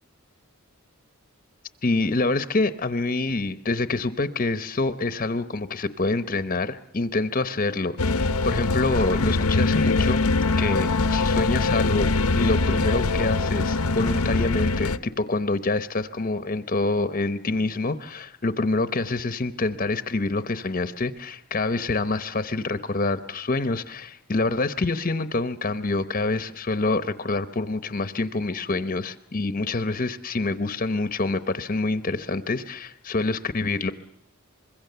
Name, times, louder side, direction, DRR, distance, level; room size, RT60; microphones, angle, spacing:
voice 1, 1.8-10.2 10.6-33.9, left 3 dB, 40° left, 12 dB, 0.8 m, -26 dB
sound 1, 8.0-15.0, left 3 dB, 80° left, 0.9 m, -23 dB
25.5 x 22.0 x 6.8 m, 0.71 s
head